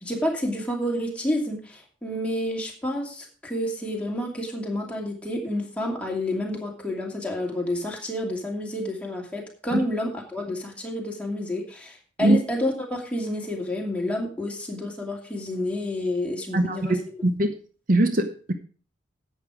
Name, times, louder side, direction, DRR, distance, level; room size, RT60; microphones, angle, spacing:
voice 1, 0.0-17.1, left 1 dB, 5° left, -2 dB, 2.7 m, -29 dB
voice 2, 16.5-17.0 17.2-17.5 17.9-18.5, right 1 dB, 45° right, 7 dB, 0.9 m, -21 dB
11.0 x 8.4 x 5.0 m, 0.41 s
head